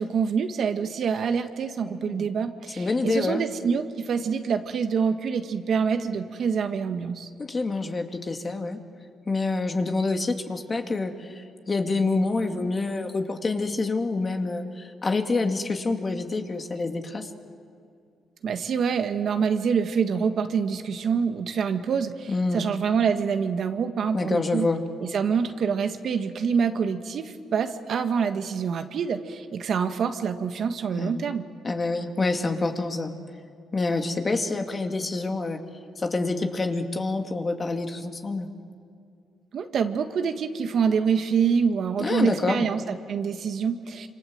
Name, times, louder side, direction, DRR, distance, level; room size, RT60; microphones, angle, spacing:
voice 1, 0.0-7.3 18.4-24.7 25.0-31.4 39.5-44.1, right 6 dB, 60° right, 7 dB, 1.6 m, -26 dB
voice 2, 1.9-2.3 2.8-3.5 7.4-8.8 9.3-17.3 22.3-22.6 24.1-24.8 31.0-31.2 31.6-33.2 33.7-35.6 36.0-38.5 42.0-42.7, left 3 dB, 30° left, 5 dB, 2.3 m, -27 dB
27.5 x 26.0 x 7.8 m, 2.3 s
cardioid pair, 90°, 0 cm